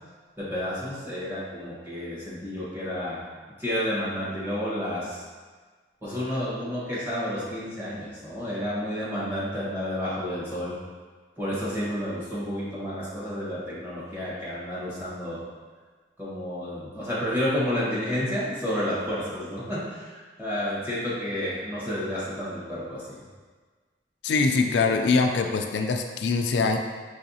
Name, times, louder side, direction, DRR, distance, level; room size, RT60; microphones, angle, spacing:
voice 1, 0.4-3.2 3.6-5.2 6.0-10.7 11.4-15.4 16.2-23.2, equal, 10° right, -9 dB, 1.3 m, -30 dB
voice 2, 24.2-26.8, left 4 dB, 75° left, 4 dB, 0.3 m, -23 dB
5.6 x 3.3 x 2.7 m, 1.4 s
head